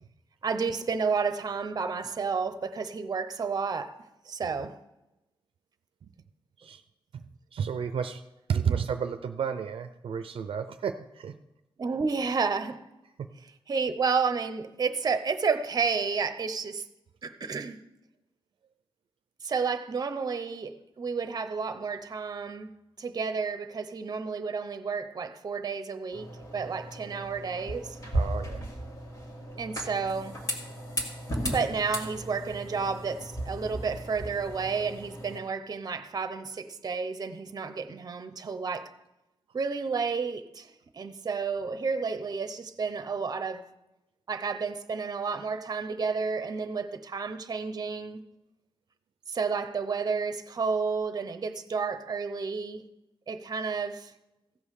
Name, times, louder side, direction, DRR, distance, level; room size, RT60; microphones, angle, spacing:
voice 1, 0.4-3.9 4.3-4.7 11.8-12.9 13.7-16.8 17.2-17.8 19.4-22.7 23.0-26.3 26.5-28.0 29.6-30.4 31.5-39.0 39.5-40.7 40.9-43.6 44.3-48.2 49.3-52.8 53.3-54.1, right 5 dB, 45° right, 0.8 m, -31 dB
voice 2, 7.5-8.2 8.5-11.4 13.2-13.3 28.1-28.6, right 7 dB, 75° right, 0.5 m, -31 dB
sound 1, 26.1-35.4, right 1 dB, 40° left, 2.0 m, -36 dB
15.5 x 5.5 x 6.4 m
wide cardioid pair, 135°, 9 cm